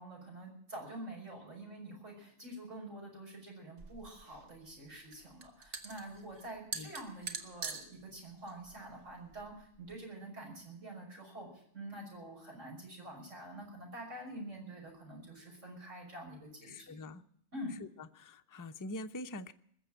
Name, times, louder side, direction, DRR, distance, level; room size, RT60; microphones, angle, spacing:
voice 1, 0.0-17.1 17.5-17.8, right 1 dB, 85° right, -1 dB, 6.3 m, -47 dB
sound 1, 3.8-9.9, right 4 dB, 70° right, 1.7 m, -46 dB
voice 2, 16.7-17.2 18.0-19.5, left 1 dB, 25° left, 8 dB, 0.4 m, -44 dB
21.0 x 7.2 x 8.9 m, 0.69 s
omnidirectional pair, 1.2 m